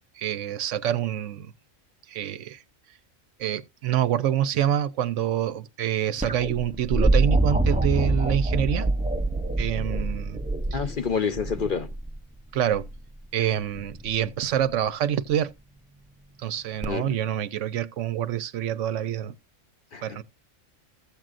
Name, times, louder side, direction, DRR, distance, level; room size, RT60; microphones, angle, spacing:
voice 1, 0.2-1.5 2.1-2.6 3.4-8.9 9.6-10.4 10.7-10.8 12.5-12.9 13.3-15.5 16.4-19.3 20.0-20.2, right 10 dB, 75° right, 1.0 m, -26 dB
sound 1, 6.2-12.1 13.7-14.3 16.8-16.9, right 2 dB, 10° right, 0.4 m, -25 dB
voice 2, 10.7-11.9 16.9-17.2 19.9-20.2, left 6 dB, 45° left, 0.9 m, -28 dB
14.5 x 7.5 x 2.5 m
omnidirectional pair, 1.3 m